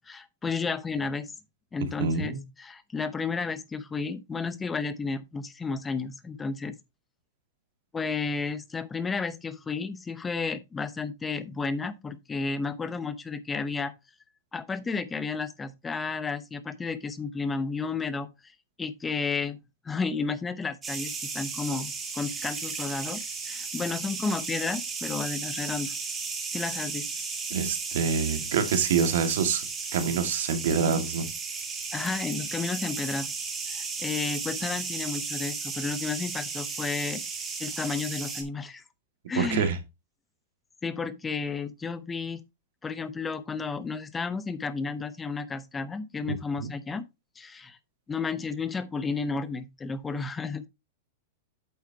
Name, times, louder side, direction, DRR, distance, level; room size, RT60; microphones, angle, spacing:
voice 1, 0.1-1.3 1.7-6.8 7.9-13.9 14.5-18.3 18.8-19.6 19.8-25.9 26.5-27.1 31.9-33.4 33.7-37.2 37.6-38.8 39.3-39.7 40.8-42.4 42.8-47.1 47.4-47.8 48.1-50.7, left 4 dB, 10° left, 0.8 m, -32 dB
voice 2, 2.0-2.4 27.5-29.6 29.9-31.3 39.4-39.8 46.6-46.7, right 6 dB, 75° right, 2.0 m, -26 dB
sound 1, 20.8-38.4, right 4 dB, 15° right, 2.0 m, -34 dB
8.7 x 7.1 x 2.8 m
supercardioid pair, 150°, 0 cm